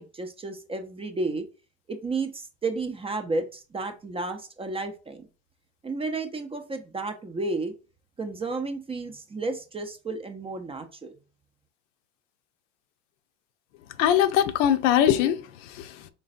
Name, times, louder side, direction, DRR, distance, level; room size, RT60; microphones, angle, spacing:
voice 1, 0.0-1.5 1.9-5.3 5.8-7.7 8.2-11.1, right 3 dB, 15° right, 0.4 m, -32 dB
voice 2, 14.0-16.1, left 10 dB, 75° left, 0.6 m, -22 dB
3.9 x 3.2 x 2.5 m
hypercardioid pair, 90°, 37 cm